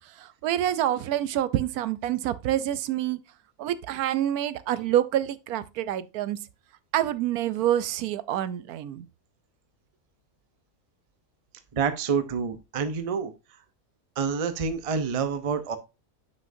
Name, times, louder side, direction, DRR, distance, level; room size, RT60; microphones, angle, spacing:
voice 1, 0.0-3.2 3.6-6.4 6.9-9.1, right 12 dB, 75° right, 1.0 m, -27 dB
voice 2, 11.7-13.3 14.2-15.8, right 6 dB, 35° right, 0.5 m, -27 dB
7.6 x 6.2 x 2.6 m
omnidirectional pair, 1.6 m